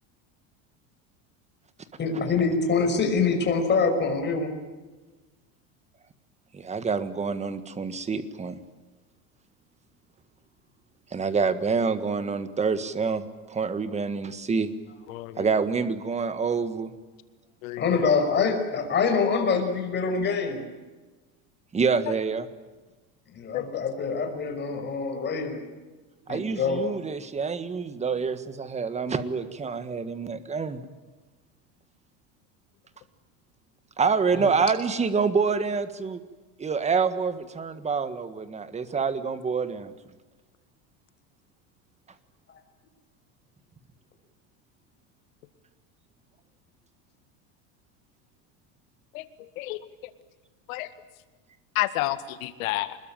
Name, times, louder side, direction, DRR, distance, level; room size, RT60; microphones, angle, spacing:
voice 1, 2.0-4.5 17.8-20.6 23.3-25.6 26.3-26.8 34.3-34.5, left 5 dB, 25° left, 4 dB, 5.8 m, -25 dB
voice 2, 6.5-8.6 11.1-13.2 13.5-14.7 15.4-16.9 21.7-22.5 26.3-30.8 34.0-36.2 36.6-39.9, right 5 dB, 15° right, 12 dB, 1.7 m, -27 dB
voice 3, 15.1-15.5 17.6-18.0 23.5-23.8 49.1-49.2 49.6-49.8 50.7-50.9 51.8-53.0, left 16 dB, 85° left, 11 dB, 2.1 m, -30 dB
26.5 x 21.0 x 9.1 m, 1.2 s
cardioid pair, 145°, 40 cm